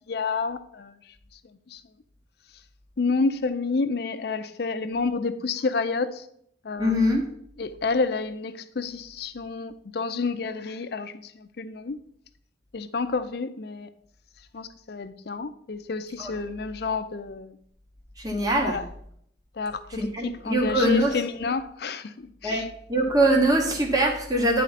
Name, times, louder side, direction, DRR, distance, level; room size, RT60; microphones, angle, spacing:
voice 1, 0.1-0.9 1.7-1.8 3.0-6.3 6.6-7.2 7.6-12.0 12.7-13.9 14.5-17.6 18.6-18.9 19.6-22.7, left 4 dB, 55° left, 0.5 m, -29 dB
voice 2, 6.8-7.2 16.2-16.3 18.2-18.8 19.9-21.1 22.4-22.6 22.9-24.6, right 1 dB, 20° right, 1.1 m, -22 dB
10.0 x 4.2 x 4.1 m
head